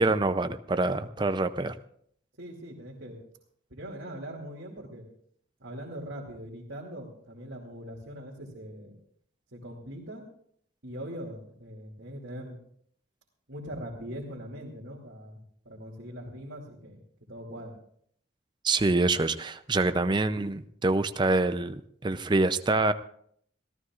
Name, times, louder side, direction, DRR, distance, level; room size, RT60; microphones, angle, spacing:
voice 1, 0.0-1.8 18.6-22.9, right 2 dB, 25° right, 10 dB, 0.5 m, -26 dB
voice 2, 2.4-3.2 3.7-5.1 5.6-8.9 9.5-10.2 10.8-12.6 13.5-17.0 17.3-17.8, equal, 70° right, -5 dB, 2.7 m, -41 dB
26.0 x 14.5 x 2.5 m, 0.64 s
head